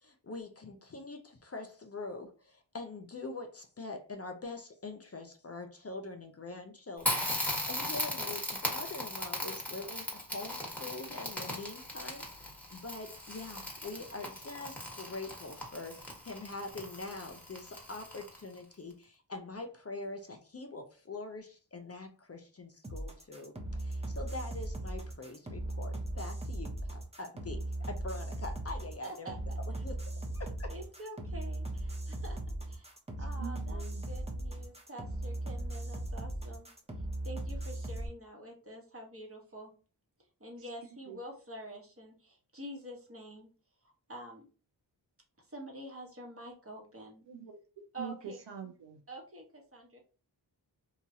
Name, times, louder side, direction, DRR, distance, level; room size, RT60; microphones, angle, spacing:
voice 1, 0.0-7.3 7.6-29.3 29.8-30.0 30.3-30.7, left 3 dB, 35° left, 0.5 m, -44 dB
Crackle, 7.0-18.6, left 1 dB, 5° left, 1.2 m, -38 dB
sound 1, 22.8-38.1, right 1 dB, 15° right, 0.7 m, -38 dB
voice 2, 29.0-29.4 29.7-29.8 30.7-36.7 37.2-39.7 40.4-43.5 44.1-44.5 45.5-47.2 47.9-48.5 49.1-50.0, right 1 dB, 30° right, 1.0 m, -47 dB
voice 3, 33.4-34.1 41.1-41.2 47.3-47.6 48.0-49.0, right 7 dB, 70° right, 0.6 m, -44 dB
2.9 x 2.3 x 2.6 m
cardioid pair, 50°, 45 cm